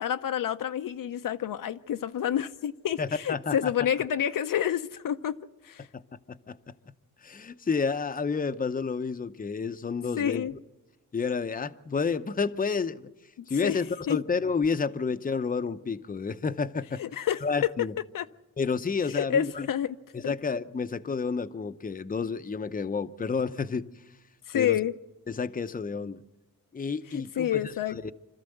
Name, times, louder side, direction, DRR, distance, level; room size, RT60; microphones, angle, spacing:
voice 1, 0.0-5.4 5.6-5.9 10.2-10.5 13.6-13.8 14.1-14.2 17.0-17.7 18.1-18.3 19.1-20.0 20.2-20.3 24.5-24.9 27.1-28.1, left 10 dB, 70° left, 0.7 m, -28 dB
voice 2, 3.0-3.7 5.9-6.0 6.3-6.7 7.2-10.5 11.1-13.1 13.5-17.0 17.4-17.9 18.6-19.7 20.1-23.9 24.5-24.8 25.3-26.2 26.7-28.0, left 5 dB, 25° left, 0.7 m, -30 dB
26.0 x 13.5 x 7.9 m
cardioid pair, 80°, 35 cm